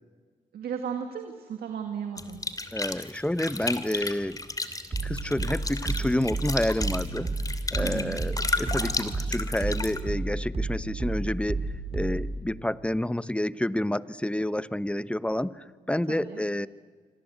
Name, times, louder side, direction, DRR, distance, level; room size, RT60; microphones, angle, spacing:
voice 1, 0.5-2.4 7.8-8.2 16.1-16.4, right 7 dB, 75° right, 6 dB, 2.1 m, -35 dB
sound 1, 2.2-10.0, left 2 dB, 20° left, 2.9 m, -33 dB
voice 2, 2.7-4.4 5.0-7.3 7.7-16.7, left 1 dB, 5° left, 16 dB, 1.0 m, -29 dB
sound 2, 4.9-12.4, right 2 dB, 40° right, 4.9 m, -31 dB
26.5 x 26.0 x 8.2 m, 1.5 s
hypercardioid pair, 45°, 16 cm